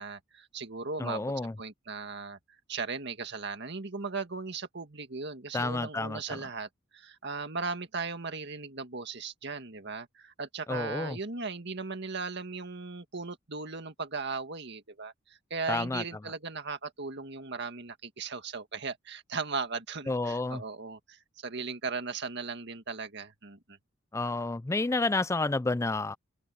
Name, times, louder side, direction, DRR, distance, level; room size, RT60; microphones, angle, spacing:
voice 1, 0.0-1.2 1.6-2.4 2.7-23.8, right 4 dB, 60° right, 1.9 m, -37 dB
voice 2, 1.0-1.5 5.5-6.4 10.7-11.2 15.7-16.0 20.1-20.6 24.1-26.2, left 2 dB, 15° left, 0.4 m, -30 dB
open air
head